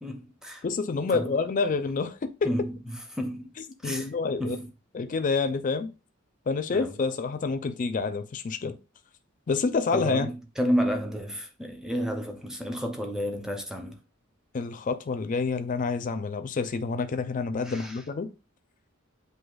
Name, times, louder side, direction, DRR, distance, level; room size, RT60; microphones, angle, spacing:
voice 1, 0.0-0.6 1.1-1.3 2.4-2.7 3.1-3.5 3.8-4.1 4.4-4.7 6.7-7.0 9.9-14.0 17.6-18.0, equal, 5° right, 0.6 m, -31 dB
voice 2, 0.6-2.5 3.8-4.6 4.9-5.9 6.5-8.8 9.5-10.3 14.5-18.3, left 4 dB, 40° left, 0.4 m, -28 dB
7.7 x 2.7 x 2.3 m
head